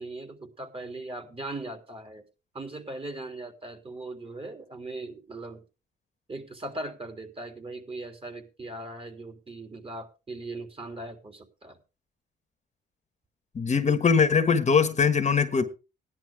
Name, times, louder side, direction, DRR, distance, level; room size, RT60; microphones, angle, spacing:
voice 1, 0.0-2.2 2.5-5.6 6.3-11.8, right 2 dB, 30° right, 3.3 m, -39 dB
voice 2, 13.5-15.6, left 5 dB, 35° left, 1.4 m, -22 dB
16.5 x 10.5 x 3.6 m
cardioid pair, 90°, 20 cm